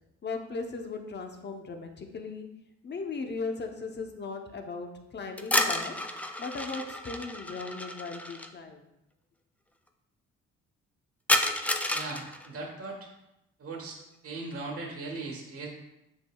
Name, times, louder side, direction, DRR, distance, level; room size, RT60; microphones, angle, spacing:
voice 1, 0.2-2.5 2.8-6.0 6.4-8.8, left 4 dB, 35° left, 4 dB, 0.9 m, -37 dB
sound 1, 5.4-8.5 11.3-12.5, left 1 dB, 5° left, 0.4 m, -30 dB
voice 2, 11.9-13.1 13.6-14.0 14.2-15.7, right 3 dB, 50° right, -1 dB, 1.5 m, -38 dB
7.5 x 5.8 x 2.3 m, 0.89 s
cardioid pair, 90°, 30 cm